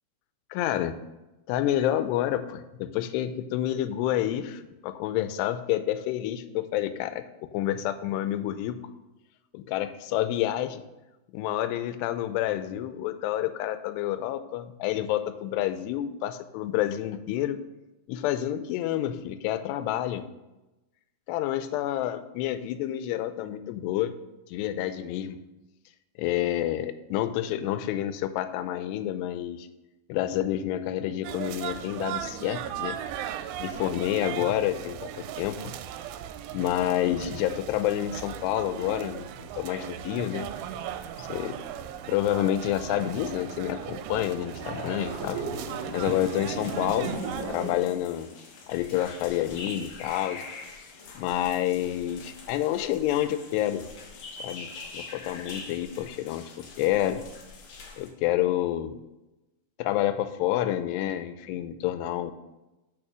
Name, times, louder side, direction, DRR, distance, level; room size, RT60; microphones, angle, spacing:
voice 1, 0.5-1.0 1.5-7.2 7.5-8.8 9.5-10.8 11.3-17.6 18.1-20.2 21.3-24.1 24.5-25.4 26.2-29.7 30.1-33.0 33.6-35.6 36.5-40.5 41.2-41.6 42.1-45.4 45.9-47.1 47.5-48.3 48.7-50.5 51.2-53.8 54.4-57.2 58.0-59.0 59.8-62.3, left 12 dB, 85° left, 11 dB, 2.7 m, -28 dB
columbia road flower market, 31.2-47.7, right 10 dB, 85° right, 2.6 m, -37 dB
sound 1, 40.2-47.9, right 3 dB, 40° right, 3.6 m, -39 dB
sound 2, 45.9-58.1, left 4 dB, 65° left, 1.7 m, -44 dB
6.4 x 6.0 x 6.0 m, 1.0 s
omnidirectional pair, 4.7 m